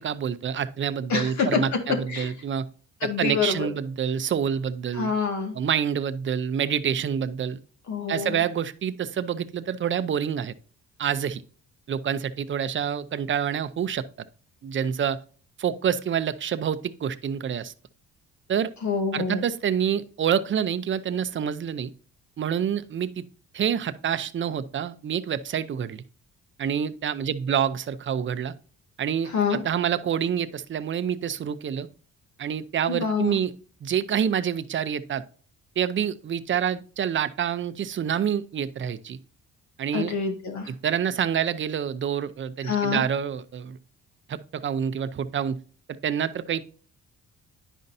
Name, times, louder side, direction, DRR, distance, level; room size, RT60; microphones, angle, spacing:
voice 1, 0.0-2.7 3.2-5.1 5.5-7.6 8.1-10.5 11.0-11.4 11.9-14.0 14.6-15.2 15.6-17.7 18.5-18.7 19.1-21.9 22.4-23.2 23.5-26.0 26.6-28.5 29.0-31.9 32.4-33.5 33.8-35.2 35.8-39.2 39.8-40.1 40.7-43.8 44.3-45.6 45.9-46.7, right 8 dB, 40° right, 13 dB, 0.6 m, -27 dB
voice 2, 1.1-1.6 2.1-2.3 3.0-3.7 4.9-5.5 7.9-8.4 18.8-19.4 29.3-29.6 32.9-33.4 39.9-40.7 42.6-43.0, left 5 dB, 65° left, 4 dB, 1.8 m, -26 dB
10.0 x 5.3 x 2.6 m, 0.41 s
cardioid pair, 90°, 30 cm